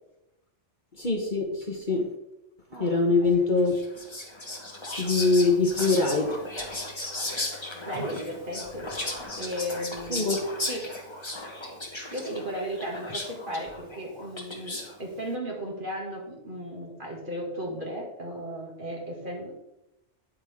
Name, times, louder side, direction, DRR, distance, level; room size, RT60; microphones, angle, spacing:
voice 1, 1.0-2.1 2.8-3.8 5.0-6.4 10.1-10.4, left 3 dB, 40° left, 2 dB, 1.2 m, -23 dB
voice 2, 2.7-3.4 7.3-7.4 7.8-8.9 9.4-10.4 10.7-10.9 12.1-19.6, equal, 45° right, -2 dB, 2.5 m, -35 dB
Whispering, 3.7-15.0, left 2 dB, 25° left, 1.4 m, -36 dB
9.3 x 8.4 x 3.6 m, 0.86 s
omnidirectional pair, 1.2 m